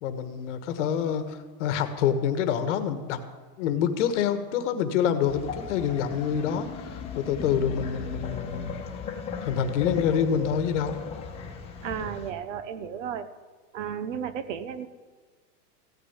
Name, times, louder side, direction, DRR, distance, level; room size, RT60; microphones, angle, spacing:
voice 1, 0.0-3.2 3.6-8.7 9.4-11.0, left 8 dB, 45° left, 9 dB, 1.3 m, -27 dB
sound 1, 5.3-12.3, left 6 dB, 10° left, 1.3 m, -36 dB
voice 2, 11.8-13.3 13.7-14.9, right 8 dB, 50° right, 13 dB, 0.9 m, -33 dB
15.5 x 6.7 x 9.7 m, 1.5 s
supercardioid pair, 175°, 48 cm